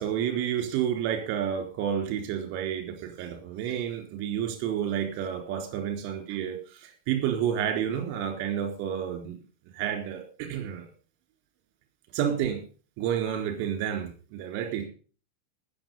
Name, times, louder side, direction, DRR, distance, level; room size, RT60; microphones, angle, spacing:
voice 1, 0.0-9.4 9.7-10.9 12.1-12.6 13.0-14.9, right 9 dB, 50° right, 5 dB, 4.0 m, -30 dB
18.0 x 7.3 x 5.5 m, 0.40 s
figure-of-eight pair, 90°, 0 cm